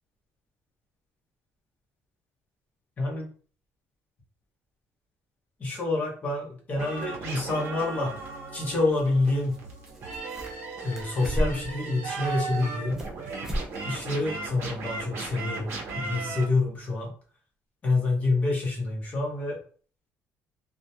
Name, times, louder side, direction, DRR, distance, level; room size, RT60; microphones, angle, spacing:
voice 1, 3.0-3.3 5.6-8.1 8.5-9.6 10.8-13.0 13.8-17.1 17.8-19.6, left 2 dB, 30° left, -1 dB, 0.8 m, -27 dB
sound 1, 6.7-16.4, right 4 dB, 50° right, 0.7 m, -36 dB
sound 2, 9.5-9.6 9.8-10.7 10.9-11.8 12.2-13.1 13.4-13.7 14.0-14.1 14.6-14.7, equal, 10° right, 0.4 m, -32 dB
2.3 x 2.1 x 2.7 m, 0.41 s
cardioid pair, 175°, 5 cm